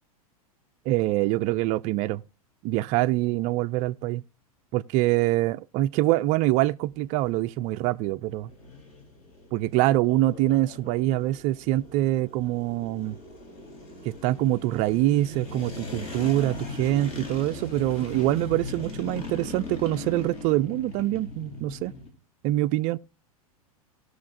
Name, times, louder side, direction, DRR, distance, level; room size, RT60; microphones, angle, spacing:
voice 1, 0.9-2.2 2.6-4.2 4.7-8.5 9.5-13.2 14.0-21.9 22.4-23.0, right 16 dB, 40° right, 0.4 m, -25 dB
sound 1, 6.9-22.1, left 2 dB, 45° left, 3.7 m, -39 dB
18.5 x 6.4 x 2.5 m
hypercardioid pair, 105°, 19 cm